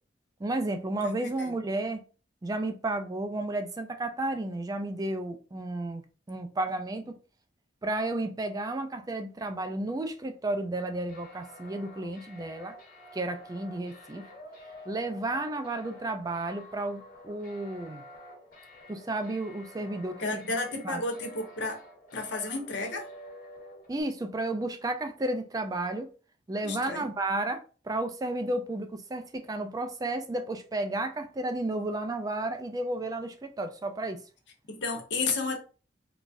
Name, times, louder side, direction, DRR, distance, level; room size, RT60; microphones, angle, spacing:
voice 1, 0.4-2.0 2.4-6.0 6.3-7.2 7.8-12.7 13.1-14.2 14.9-18.0 18.9-20.2 20.8-21.0 23.9-26.1 26.5-34.2, right 2 dB, 20° right, 0.3 m, -32 dB
voice 2, 1.0-1.5 20.2-21.8 22.1-23.1 26.6-27.1 34.7-35.6, left 3 dB, 70° left, 0.9 m, -32 dB
sound 1, 11.1-24.0, equal, 50° left, 1.3 m, -49 dB
3.8 x 2.3 x 2.4 m
head